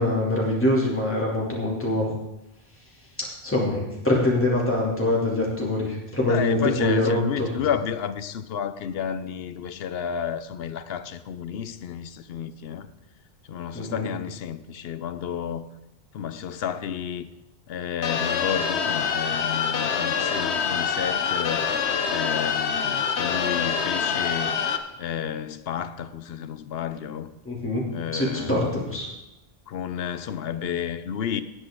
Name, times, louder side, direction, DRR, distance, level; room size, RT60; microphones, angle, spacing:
voice 1, 0.0-2.1 3.2-7.5 13.7-14.1 27.4-27.9 28.1-29.1, left 1 dB, 10° left, 2.7 m, -24 dB
voice 2, 6.3-12.9 13.5-15.6 16.1-17.3 17.7-21.7 22.1-24.6 25.0-27.3 27.9-29.0 29.7-31.4, left 8 dB, 70° left, 0.8 m, -31 dB
sound 1, 18.0-24.8, left 6 dB, 90° left, 1.1 m, -25 dB
18.0 x 8.2 x 3.7 m
omnidirectional pair, 1.1 m